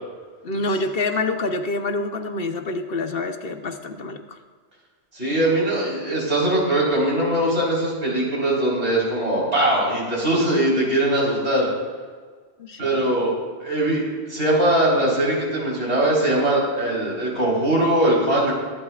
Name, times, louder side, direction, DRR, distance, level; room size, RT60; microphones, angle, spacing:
voice 1, 0.4-4.4 12.6-13.2, left 2 dB, 60° left, 6 dB, 1.0 m, -27 dB
voice 2, 5.1-11.7 12.8-13.3 13.6-18.5, right 1 dB, 80° right, -4 dB, 4.5 m, -21 dB
22.5 x 12.0 x 2.4 m, 1.5 s
omnidirectional pair, 1.1 m